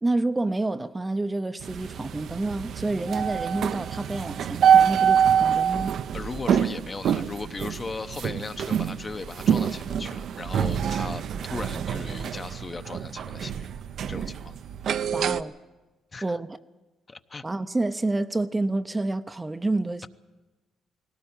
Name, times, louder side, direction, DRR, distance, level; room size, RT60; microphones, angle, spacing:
voice 1, 0.0-5.9 15.1-15.6 16.2-16.6 17.4-20.1, right 2 dB, 15° right, 0.6 m, -28 dB
sound 1, 1.6-15.4, right 8 dB, 65° right, 0.6 m, -25 dB
voice 2, 6.1-11.2 11.5-13.7 14.1-14.6 16.1-16.4 17.1-17.4, left 3 dB, 30° left, 0.8 m, -37 dB
19.5 x 17.5 x 8.8 m
cardioid pair, 105°, 0 cm